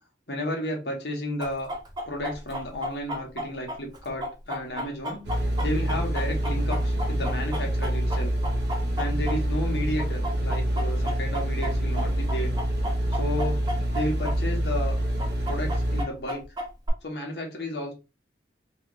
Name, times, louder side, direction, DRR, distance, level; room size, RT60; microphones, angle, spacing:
voice 1, 0.3-1.7 2.1-5.3 5.6-8.3 9.0-12.5 13.1-13.6 13.9-15.0 15.4-16.4 17.0-17.9, left 1 dB, 65° left, 0 dB, 1.3 m, -32 dB
Chicken rooster, 1.4-9.7 10.0-14.3 14.6-14.7 15.2-16.9, equal, 25° right, 0.7 m, -33 dB
sound 1, 5.2-16.0, right 1 dB, 65° right, 1.0 m, -26 dB
3.2 x 2.5 x 3.1 m, 0.29 s
head